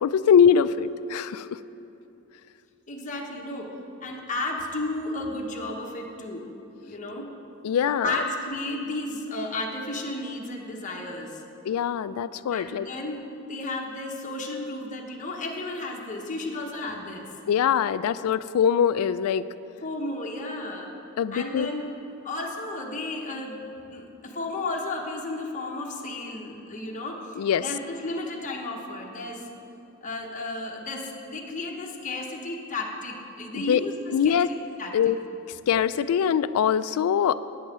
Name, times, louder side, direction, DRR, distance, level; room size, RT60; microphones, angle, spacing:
voice 1, 0.0-1.6 7.6-8.2 11.6-12.9 17.5-19.5 21.2-21.7 27.4-27.6 33.5-33.8 34.1-34.5 34.9-35.2 35.7-37.4, left 8 dB, 90° left, 16 dB, 0.3 m, -22 dB
voice 2, 2.9-6.4 6.8-7.3 8.0-11.4 12.5-17.3 19.8-20.9 21.3-21.8 22.2-29.5 30.0-34.4 34.8-35.1, left 2 dB, 35° left, 0 dB, 0.9 m, -33 dB
9.2 x 5.5 x 7.4 m, 2.8 s
head